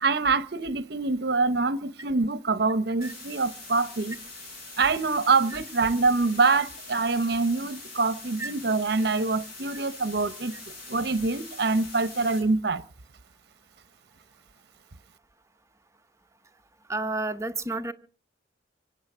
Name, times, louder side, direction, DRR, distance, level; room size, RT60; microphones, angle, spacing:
voice 1, 0.0-4.2 4.8-10.5 10.9-12.8, right 3 dB, 55° right, 0.8 m, -25 dB
sound 1, 3.0-12.4, left 3 dB, 50° left, 6.9 m, -43 dB
voice 2, 16.9-17.9, right 2 dB, 15° right, 0.8 m, -31 dB
25.0 x 8.8 x 6.2 m
head